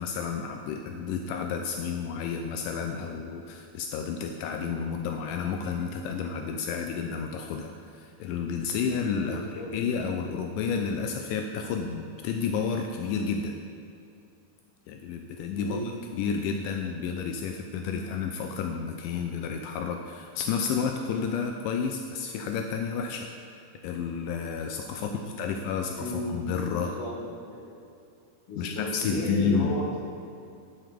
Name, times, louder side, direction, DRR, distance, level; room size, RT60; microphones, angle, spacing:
voice 1, 0.0-13.6 14.9-15.8 16.1-23.3 23.8-26.9 28.6-29.7, left 6 dB, 85° left, 4 dB, 1.9 m, -31 dB
voice 2, 9.2-9.8 15.6-15.9 25.0-25.6 26.0-26.4 26.7-27.2 27.5-27.7 28.5-30.0, left 2 dB, 50° left, -3 dB, 2.0 m, -34 dB
10.0 x 6.2 x 5.0 m, 2.6 s
omnidirectional pair, 4.3 m